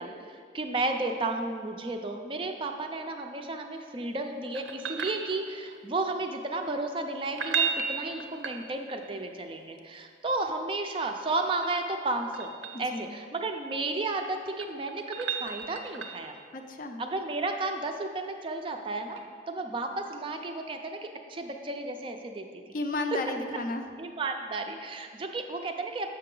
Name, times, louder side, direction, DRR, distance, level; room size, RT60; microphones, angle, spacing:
voice 1, 0.0-12.5 12.8-16.4 17.0-19.2 19.5-22.6 23.1-23.2 24.0-26.1, right 2 dB, 25° right, 5 dB, 0.4 m, -33 dB
sound 1, 4.5-5.8 7.2-9.1 11.2-12.9 14.3-16.4 19.1-19.2, right 6 dB, 75° right, 0.6 m, -34 dB
voice 2, 12.7-13.2 16.5-17.0 22.7-23.8, left 2 dB, 45° left, 6 dB, 0.4 m, -33 dB
7.5 x 5.6 x 3.7 m, 2.1 s
head